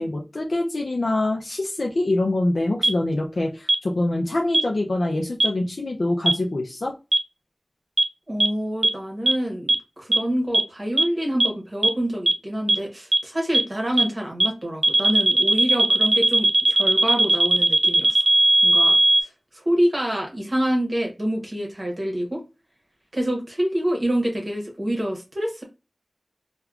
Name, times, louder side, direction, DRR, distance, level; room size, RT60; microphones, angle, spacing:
voice 1, 0.0-6.9, left 2 dB, 80° left, 0 dB, 0.4 m, -25 dB
sound 1, 2.8-2.9 3.7-3.8 4.5-4.6 5.4-5.5 6.3-6.4 7.1-7.2 8.0-8.1 8.4-8.5 8.8-8.9 9.3-9.4 9.7-9.8 10.1-10.2 10.5-10.6 11.0-11.1 11.4-11.5 11.8-11.9 12.3-12.4 12.7-12.8 13.1-13.2 13.5-13.6 14.0-14.1 14.4-14.5 14.8-19.2, right 2 dB, 75° right, 0.3 m, -17 dB
voice 2, 8.3-18.2 18.6-22.4 23.1-25.6, equal, 40° right, 0 dB, 0.8 m, -26 dB
3.5 x 2.2 x 2.3 m, 0.28 s
wide cardioid pair, 60°, 0 cm